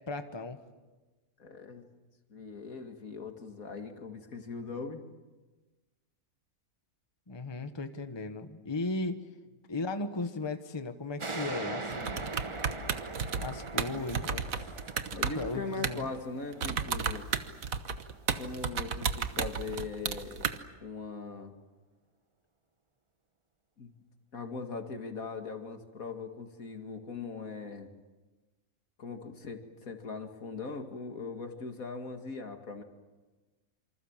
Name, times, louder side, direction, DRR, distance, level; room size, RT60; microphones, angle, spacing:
voice 1, 0.1-0.6 7.3-9.2 9.7-12.3 13.4-14.7 15.3-16.1, left 3 dB, 20° left, 8 dB, 1.2 m, -36 dB
voice 2, 1.4-1.8 2.3-5.0 13.9-14.1 15.1-17.3 18.4-21.5 23.8-23.9 24.3-27.9 29.0-32.8, left 4 dB, 70° left, 5 dB, 2.5 m, -40 dB
sound 1, 11.2-18.4, right 3 dB, 25° right, 1.0 m, -42 dB
sound 2, 11.9-16.2 16.5-20.6, right 6 dB, 70° right, 1.6 m, -33 dB
27.5 x 26.0 x 7.3 m, 1.2 s
omnidirectional pair, 1.5 m